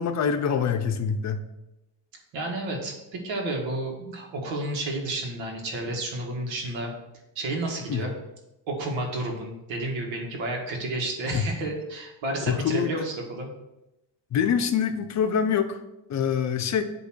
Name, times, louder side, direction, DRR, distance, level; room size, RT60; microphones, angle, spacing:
voice 1, 0.0-1.4 7.9-8.0 11.3-11.4 12.5-12.9 14.3-15.8 16.1-16.8, left 7 dB, 40° left, 7 dB, 0.6 m, -25 dB
voice 2, 2.3-6.9 7.4-8.1 8.7-13.5, right 2 dB, 85° right, 0 dB, 2.0 m, -31 dB
8.1 x 3.1 x 6.2 m, 0.94 s
cardioid pair, 160°, 44 cm